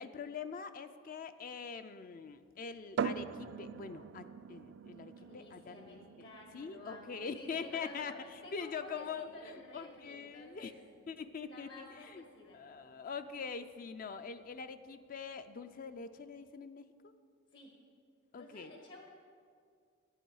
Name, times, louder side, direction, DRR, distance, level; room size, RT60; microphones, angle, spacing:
voice 1, 0.0-6.3 6.5-10.7 11.1-12.2 12.5-17.1 18.3-18.7, left 5 dB, 45° left, 10 dB, 0.4 m, -44 dB
sound 1, 3.0-16.5, right 7 dB, 65° right, 0.3 m, -46 dB
voice 2, 5.2-10.7 11.5-12.6 17.5-17.7 18.3-19.1, left 1 dB, 65° left, 1 dB, 1.3 m, -52 dB
11.0 x 9.0 x 4.7 m, 2.1 s
head